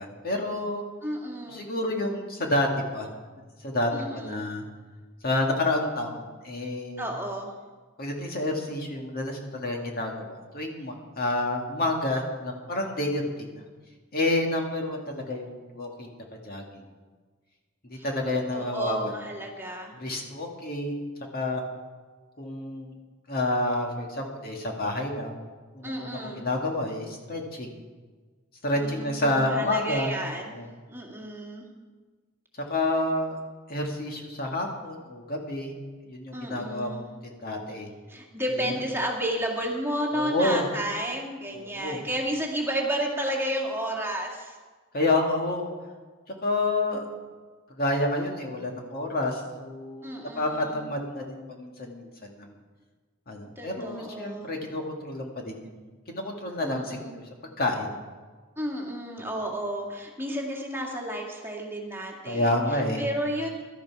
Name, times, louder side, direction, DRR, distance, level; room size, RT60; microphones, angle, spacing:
voice 1, 0.0-0.8 1.5-2.7 2.9-3.1 3.6-4.6 5.2-7.1 8.0-13.6 14.1-16.1 16.4-16.6 17.8-19.1 19.9-21.6 22.4-22.9 23.3-25.4 25.7-27.8 28.6-30.1 30.5-30.7 32.7-33.4 33.7-35.8 36.1-37.9 38.5-38.7 40.1-40.7 41.5-42.0 44.9-45.7 46.4-47.0 47.7-52.5 53.3-55.7 56.1-57.2 57.6-57.9 62.3-63.0, left 2 dB, 45° left, 1 dB, 2.0 m, -29 dB
voice 2, 1.0-1.7 3.9-4.4 7.0-7.5 17.9-19.9 25.8-26.4 28.7-30.5 30.9-31.7 36.3-37.1 38.1-44.6 50.0-50.8 53.6-54.5 56.6-57.2 58.6-62.6 63.0-63.5, right 1 dB, 10° right, -1 dB, 2.1 m, -32 dB
17.0 x 12.5 x 4.8 m, 1.4 s
head